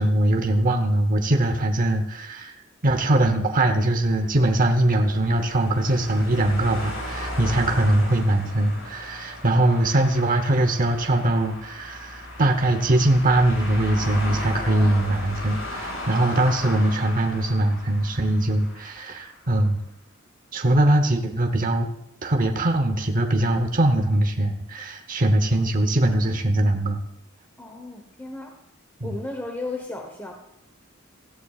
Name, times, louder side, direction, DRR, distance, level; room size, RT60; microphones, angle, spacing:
voice 1, 0.0-2.5 2.8-19.8 20.5-21.9 22.2-27.0 29.0-29.2, right 1 dB, 40° right, 5 dB, 0.9 m, -21 dB
sound 1, 4.0-19.3, left 1 dB, 85° left, 5.5 m, -36 dB
voice 2, 27.6-28.6 29.0-30.3, left 2 dB, 10° left, 2 dB, 1.0 m, -34 dB
17.0 x 14.5 x 2.4 m, 0.82 s
head